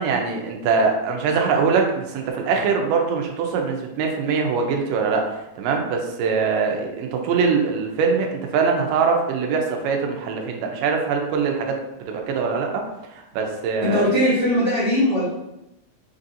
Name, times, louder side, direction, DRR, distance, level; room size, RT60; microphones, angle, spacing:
voice 1, 0.0-12.8 13.2-14.1, right 5 dB, 80° right, 2 dB, 2.2 m, -23 dB
voice 2, 13.8-15.3, left 1 dB, 80° left, -11 dB, 0.9 m, -20 dB
5.3 x 2.7 x 2.5 m, 0.90 s
omnidirectional pair, 3.9 m